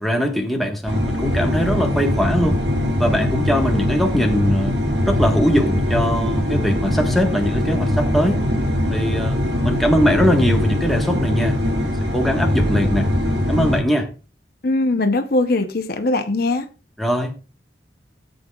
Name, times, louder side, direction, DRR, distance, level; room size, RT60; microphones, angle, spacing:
voice 1, 0.0-2.6 3.0-4.7 5.1-8.4 8.9-9.4 9.6-13.1 13.5-14.1 17.0-17.5, equal, ahead, 1.4 m, -21 dB
sound 1, 0.9-13.8, left 1 dB, 65° right, 1.9 m, -21 dB
voice 2, 14.6-16.7, left 2 dB, 55° left, 0.8 m, -20 dB
16.5 x 7.9 x 2.4 m
head